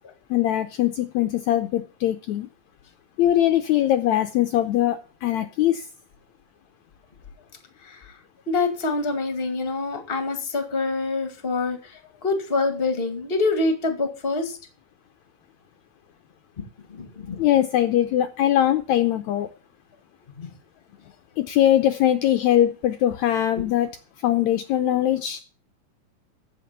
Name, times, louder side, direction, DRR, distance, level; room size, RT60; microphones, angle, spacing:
voice 1, 0.3-2.5 3.2-5.8 17.4-19.5 21.4-23.9 24.2-25.4, left 12 dB, 85° left, 8 dB, 1.6 m, -21 dB
voice 2, 8.5-14.6 16.9-17.4 20.4-20.5, left 3 dB, 20° left, 6 dB, 1.5 m, -26 dB
14.5 x 5.9 x 7.3 m, 0.37 s
omnidirectional pair, 4.2 m